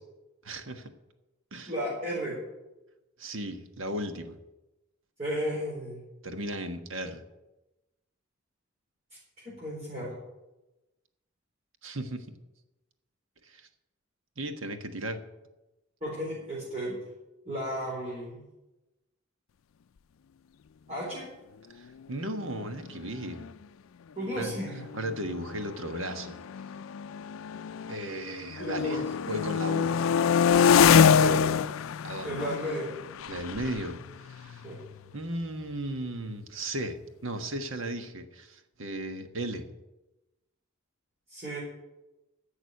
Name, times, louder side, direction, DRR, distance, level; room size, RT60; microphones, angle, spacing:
voice 1, 0.4-0.9 1.5-1.7 3.2-4.4 6.2-7.2 11.8-12.3 13.4-13.7 14.4-15.2 21.7-23.5 24.3-24.5 24.9-26.4 27.9-29.9 32.0-32.5 33.3-34.6 35.1-39.7, right 1 dB, 75° right, 7 dB, 1.3 m, -36 dB
voice 2, 1.7-2.4 5.2-6.0 9.6-10.1 16.0-17.0 17.4-18.4 20.9-21.3 24.2-24.8 28.6-29.0 31.2-31.6 32.2-32.9 34.6-34.8 41.3-41.6, equal, 35° right, -7 dB, 4.1 m, -34 dB
sound 1, 22.8-22.9 23.1-23.5 24.2-28.2 28.5-35.2, left 7 dB, 85° left, 0.4 m, -26 dB
11.0 x 7.2 x 9.5 m, 1.0 s
head